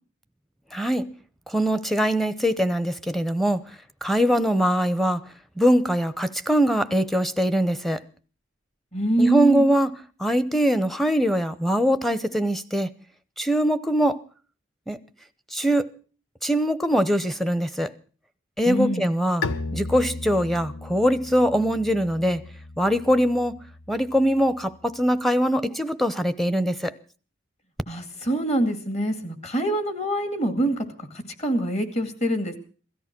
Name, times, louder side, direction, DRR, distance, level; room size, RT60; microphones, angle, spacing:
voice 1, 0.7-1.1 1.5-3.6 4.0-5.2 5.6-8.0 9.2-9.9 10.2-12.9 13.4-14.2 14.9-15.0 15.5-15.9 16.4-17.9 18.6-19.5 19.7-22.4 22.8-23.5 23.9-26.9, equal, ahead, 0.8 m, -22 dB
voice 2, 8.9-9.6 18.7-19.0 27.9-30.8 31.4-32.6, right 1 dB, 35° left, 2.3 m, -25 dB
Bowed string instrument, 19.4-25.0, left 3 dB, 85° left, 1.0 m, -36 dB
17.0 x 13.5 x 6.0 m
head